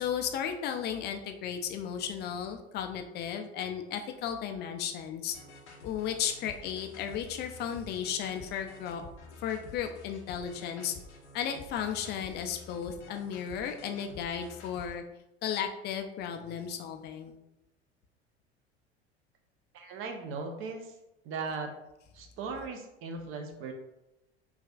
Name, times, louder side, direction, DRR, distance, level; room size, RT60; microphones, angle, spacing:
voice 1, 0.0-5.4 5.8-9.0 9.4-10.9 11.3-15.0 15.4-17.4, left 8 dB, 30° left, 5 dB, 0.4 m, -34 dB
sound 1, 5.3-14.9, left 3 dB, 80° left, 0.7 m, -50 dB
voice 2, 19.7-20.9 21.2-21.7 22.1-23.7, right 4 dB, 40° right, 4 dB, 0.7 m, -38 dB
4.8 x 2.3 x 2.3 m, 0.91 s
figure-of-eight pair, 75°, 34 cm